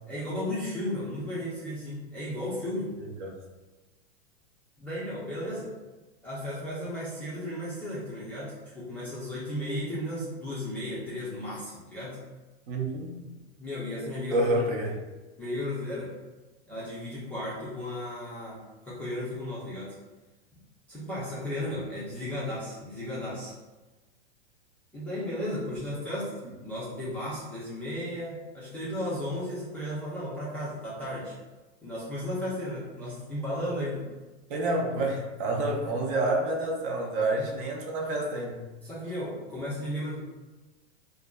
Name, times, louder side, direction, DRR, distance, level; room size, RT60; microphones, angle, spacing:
voice 1, 0.1-2.9 4.8-5.7 6.2-12.2 13.6-14.5 15.4-16.1 16.7-19.9 20.9-23.5 24.9-31.3 31.8-34.1 37.4-37.5 38.8-40.2, left 1 dB, 5° left, -11 dB, 0.3 m, -34 dB
voice 2, 3.0-3.3 12.7-13.2 14.3-14.9 34.5-38.6, right 2 dB, 50° right, 0 dB, 0.6 m, -28 dB
2.5 x 2.2 x 2.2 m, 1.2 s
hypercardioid pair, 125°, 34 cm